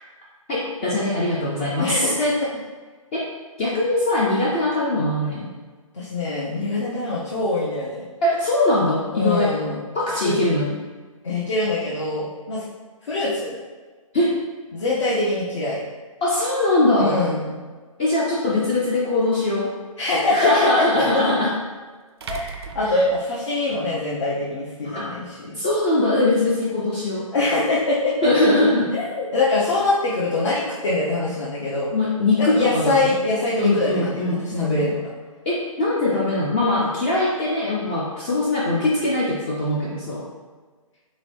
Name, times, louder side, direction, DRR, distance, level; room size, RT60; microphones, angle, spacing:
voice 1, 0.5-2.1 3.1-3.3 3.6-5.5 8.2-9.5 9.9-10.8 14.1-14.4 16.2-17.2 18.0-19.7 20.3-21.5 22.8-23.0 24.9-25.0 25.6-27.2 28.2-28.9 31.9-33.1 33.6-34.8 35.5-40.2, left 2 dB, 20° left, -6 dB, 0.4 m, -21 dB
voice 2, 1.8-2.5 5.9-8.0 9.1-9.8 10.2-10.4 11.2-12.6 13.0-13.5 14.7-15.8 17.0-17.6 20.0-20.5 22.3-25.6 27.3-28.1 28.9-31.9 32.4-35.0, left 2 dB, 55° left, -7 dB, 0.8 m, -23 dB
sound 1, 18.4-18.5 21.0-21.1 22.2-23.8, right 6 dB, 45° right, 0.4 m, -37 dB
3.9 x 3.2 x 3.2 m, 1.4 s
figure-of-eight pair, 145°, 18 cm